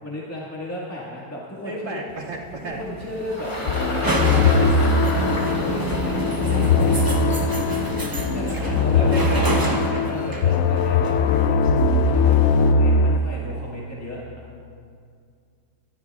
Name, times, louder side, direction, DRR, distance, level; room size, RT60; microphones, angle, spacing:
voice 1, 0.0-2.0 2.6-4.6 5.1-9.0 10.1-14.6, left 1 dB, 10° left, -6 dB, 1.6 m, -35 dB
voice 2, 1.6-2.8 8.6-10.6, right 2 dB, 60° right, -3 dB, 2.9 m, -34 dB
sound 1, 2.1-12.7, right 2 dB, 30° right, 0.4 m, -29 dB
Engine, 2.5-9.1, left 1 dB, 70° left, 3.4 m, -33 dB
sound 2, 3.7-13.2, left 4 dB, 85° left, 0.7 m, -20 dB
22.5 x 13.0 x 2.4 m, 2.2 s
omnidirectional pair, 2.0 m